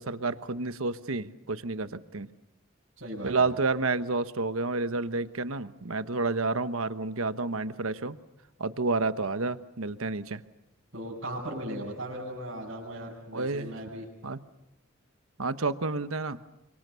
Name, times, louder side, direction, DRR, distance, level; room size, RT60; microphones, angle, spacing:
voice 1, 0.0-2.3 3.2-8.2 8.6-10.4 13.3-13.7 14.2-14.4 15.4-16.4, right 3 dB, 80° right, 12 dB, 1.2 m, -30 dB
voice 2, 3.0-3.6 10.9-14.1, right 1 dB, 60° right, -8 dB, 7.4 m, -37 dB
29.5 x 26.0 x 7.0 m, 0.88 s
head